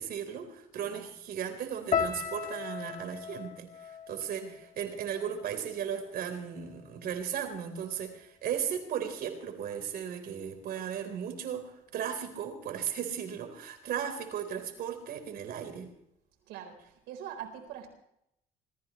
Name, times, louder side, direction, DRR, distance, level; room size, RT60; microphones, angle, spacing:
voice 1, 0.0-15.9, right 8 dB, 65° right, 6 dB, 3.9 m, -36 dB
sound 1, 1.9-6.1 6.4-7.2 7.7-8.0, left 7 dB, 45° left, 1.5 m, -37 dB
voice 2, 16.5-16.8 17.1-17.9, right 9 dB, 90° right, 4 dB, 4.2 m, -43 dB
27.0 x 15.0 x 3.1 m, 0.78 s
cardioid pair, 110°, 17 cm